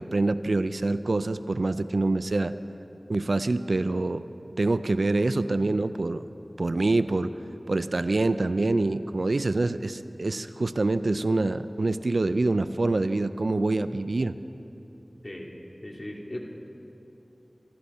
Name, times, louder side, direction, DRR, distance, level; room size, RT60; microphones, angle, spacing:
voice 1, 0.0-2.5 3.1-4.2 4.6-6.2 6.6-7.3 7.7-14.4, right 2 dB, 75° right, 12 dB, 0.4 m, -25 dB
voice 2, 15.2-15.5 15.8-16.4, left 1 dB, 40° left, -1 dB, 2.4 m, -37 dB
26.5 x 13.0 x 4.2 m, 2.9 s
wide cardioid pair, 40°, 0 cm